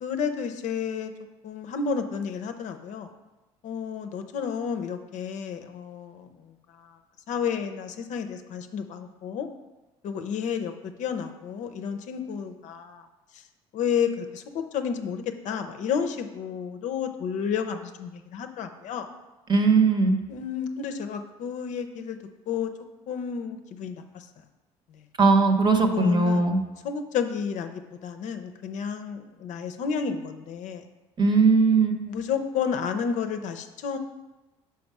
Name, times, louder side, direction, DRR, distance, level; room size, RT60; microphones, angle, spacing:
voice 1, 0.0-1.1 1.4-3.1 3.6-7.0 7.3-9.5 10.0-13.1 13.3-13.4 13.7-19.1 20.3-22.2 22.5-22.7 23.1-24.3 24.9-25.0 25.9-26.5 26.8-30.8 32.1-34.0, left 6 dB, 65° left, 7 dB, 0.6 m, -31 dB
voice 2, 19.5-20.2 25.2-26.6 31.2-32.0, right 4 dB, 35° right, 5 dB, 0.9 m, -19 dB
5.3 x 4.7 x 4.7 m, 1.1 s
supercardioid pair, 75°, 14 cm